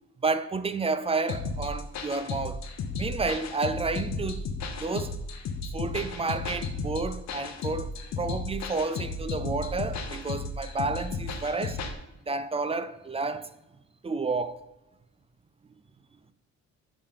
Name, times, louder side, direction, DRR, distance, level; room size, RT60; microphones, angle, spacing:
voice 1, 0.2-2.6 3.0-4.5 4.8-5.2 5.7-11.8 12.3-13.5 14.0-14.6, right 3 dB, 20° right, 0.4 m, -30 dB
sound 1, 1.3-11.9, left 3 dB, 60° left, 0.9 m, -34 dB
9.9 x 3.3 x 3.5 m
cardioid pair, 90°, 30 cm